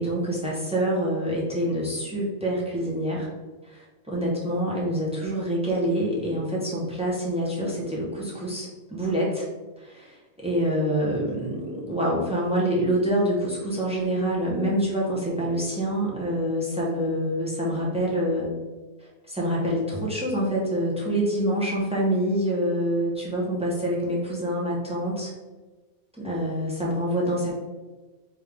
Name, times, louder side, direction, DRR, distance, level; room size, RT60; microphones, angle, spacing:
voice 1, 0.0-3.3 3.6-9.5 9.8-18.5 19.0-25.3 26.2-27.5, equal, 10° right, -5 dB, 0.4 m, -26 dB
3.6 x 3.2 x 3.3 m, 1.2 s
omnidirectional pair, 1.6 m